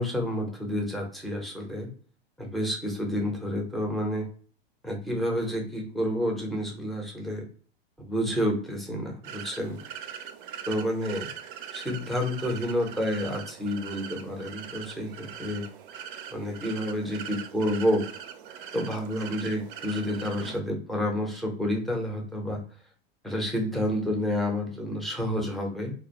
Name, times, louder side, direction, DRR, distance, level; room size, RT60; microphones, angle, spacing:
voice 1, 0.0-1.9 2.4-4.3 4.8-7.4 8.0-9.8 10.7-11.3 11.7-15.6 16.3-18.1 18.7-22.6 23.2-25.9, equal, ahead, 0 dB, 0.6 m, -29 dB
sound 1, 9.2-20.6, right 8 dB, 60° right, 0.4 m, -41 dB
2.2 x 2.2 x 2.8 m, 0.43 s
hypercardioid pair, 95°, 30 cm